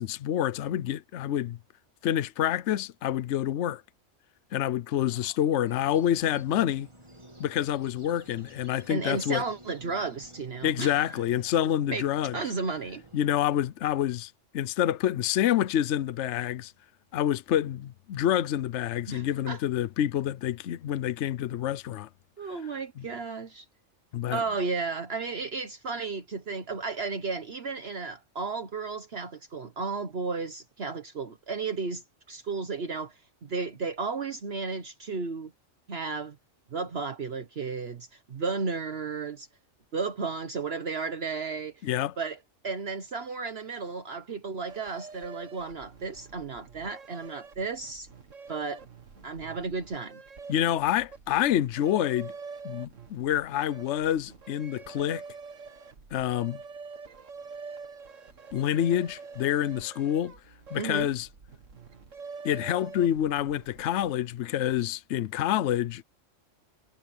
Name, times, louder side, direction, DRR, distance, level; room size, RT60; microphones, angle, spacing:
voice 1, 0.0-1.6 2.0-3.8 4.5-6.9 7.4-9.5 10.6-12.4 13.1-16.7 17.1-22.1 23.0-23.1 24.1-24.4 41.8-42.1 50.5-52.3 52.6-55.2 56.1-56.6 58.5-60.3 60.7-61.3 62.4-66.0, left 11 dB, 70° left, 0.9 m, -27 dB
sound 1, 5.6-13.7, right 1 dB, 25° right, 2.3 m, -52 dB
voice 2, 8.9-11.2 11.9-12.0 12.3-13.0 19.1-19.6 22.4-23.6 24.3-35.5 35.9-36.4 36.7-39.5 39.9-41.9 42.2-42.4 42.6-48.1 48.5-48.8 49.2-50.2 60.8-61.1, right 4 dB, 55° right, 1.3 m, -33 dB
sound 2, 44.7-64.1, right 5 dB, 85° right, 2.1 m, -46 dB
omnidirectional pair, 1.3 m